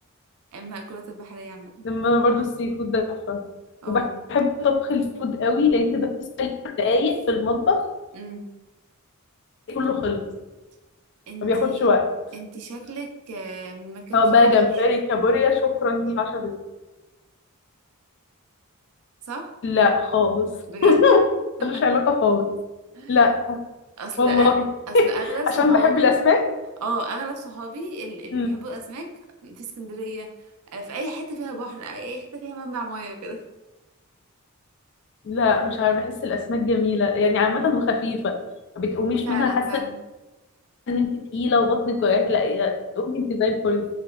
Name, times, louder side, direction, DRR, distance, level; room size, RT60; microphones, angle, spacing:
voice 1, 0.5-1.9 3.8-4.2 8.1-8.5 11.3-11.9 12.3-14.8 19.3-19.5 20.7-21.0 21.6-21.8 22.9-23.2 24.0-24.5 24.9-26.1 26.8-29.1 29.4-30.3 30.7-33.4 39.2-40.0, right 2 dB, 85° right, 4 dB, 0.5 m, -34 dB
voice 2, 1.8-3.4 3.9-4.0 4.3-7.9 9.7-10.2 11.4-12.1 14.1-16.6 19.6-20.5 20.8-21.3 21.6-22.5 23.1-23.6 24.2-24.6 24.9-25.1 25.5-26.5 28.3-28.5 35.3-38.4 38.8-39.7 40.9-43.9, left 4 dB, 50° left, 6 dB, 0.3 m, -21 dB
3.3 x 2.9 x 2.3 m, 1.1 s
head